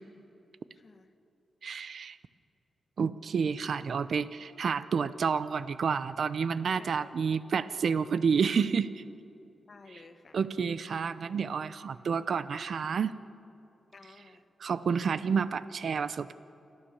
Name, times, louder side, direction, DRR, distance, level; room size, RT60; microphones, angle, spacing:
voice 1, 0.7-1.1 6.7-7.1 9.7-10.4 13.9-14.4, left 3 dB, 40° left, 7 dB, 1.5 m, -53 dB
voice 2, 1.6-2.2 3.0-9.0 10.3-13.1 14.6-16.3, right 6 dB, 65° right, 14 dB, 0.6 m, -29 dB
29.0 x 13.0 x 7.1 m, 2.7 s
wide cardioid pair, 110°, 0 cm